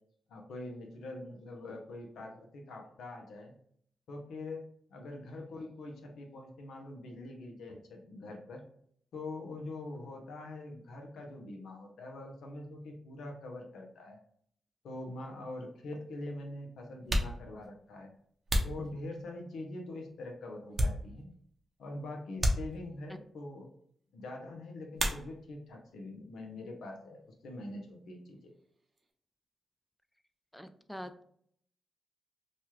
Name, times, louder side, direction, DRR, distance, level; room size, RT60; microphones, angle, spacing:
voice 1, 0.3-3.5 4.1-8.6 9.1-14.2 14.8-18.1 18.6-21.3 21.8-23.7 24.1-28.4, left 2 dB, 80° left, 2 dB, 0.7 m, -44 dB
sound 1, 17.0-19.6 20.1-21.5 21.8-21.9 22.4-23.2 24.9-25.7 26.0-26.7 26.9-29.1, equal, 40° right, 0.7 m, -35 dB
voice 2, 30.5-31.2, equal, ahead, 9 dB, 0.3 m, -45 dB
3.1 x 2.4 x 2.9 m, 0.64 s
cardioid pair, 55°, 0 cm